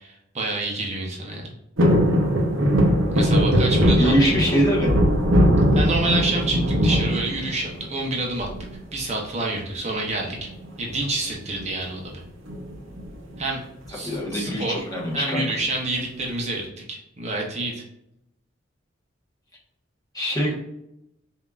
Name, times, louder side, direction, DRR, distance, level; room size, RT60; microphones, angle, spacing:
voice 1, 0.0-1.5 3.1-4.1 5.7-8.5 8.9-10.5 10.8-12.1 13.4-13.6 13.9-14.8 15.1-17.8, right 2 dB, 35° right, -1 dB, 0.9 m, -28 dB
sound 1, 1.8-8.0 8.4-9.0 10.3-10.7 10.9-11.0 11.3-11.6 12.5-13.4 13.8-13.9, equal, 80° right, 1.0 m, -20 dB
voice 2, 4.0-4.9 14.0-15.4 20.1-20.5, equal, 20° left, -4 dB, 1.2 m, -23 dB
5.4 x 2.8 x 2.4 m, 0.83 s
head